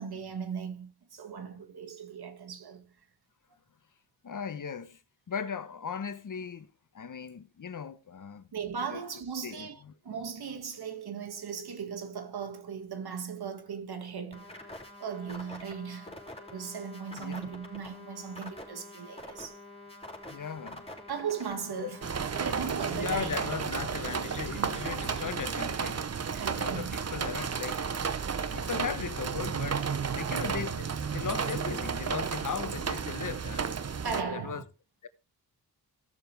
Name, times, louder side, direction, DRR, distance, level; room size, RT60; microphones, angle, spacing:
voice 1, 0.0-2.8 8.5-14.6 15.0-16.2 16.5-19.6 21.1-22.0 22.4-23.4 24.6-24.7 26.3-26.9 29.8-30.5 31.2-31.5 34.0-34.6, right 6 dB, 70° right, 2.0 m, -38 dB
voice 2, 4.2-5.0 5.3-8.5 8.9-9.0 9.4-9.9 17.2-17.4 20.3-20.9 21.8-22.0 22.9-26.0 26.6-27.8 28.5-33.8 34.3-34.6 35.0-35.1, left 6 dB, 50° left, 1.1 m, -38 dB
sound 1, 14.3-25.3, left 2 dB, 15° left, 3.8 m, -47 dB
sound 2, 22.0-34.2, right 6 dB, 40° right, 0.9 m, -33 dB
15.5 x 6.9 x 3.4 m
cardioid pair, 55°, 39 cm